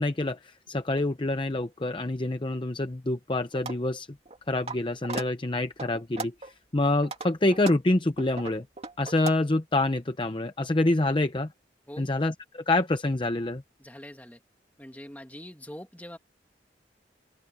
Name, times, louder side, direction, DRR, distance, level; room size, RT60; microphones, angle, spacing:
voice 1, 0.0-4.1 4.5-8.7 9.0-11.5 12.0-13.6, left 2 dB, 30° left, 0.7 m, -27 dB
sound 1, 3.5-3.8 4.3-4.8 5.0-5.3 5.8-6.5 6.9-9.3, right 3 dB, 35° right, 2.6 m, -36 dB
voice 2, 13.8-14.4 14.8-16.2, equal, 10° left, 2.4 m, -43 dB
open air
head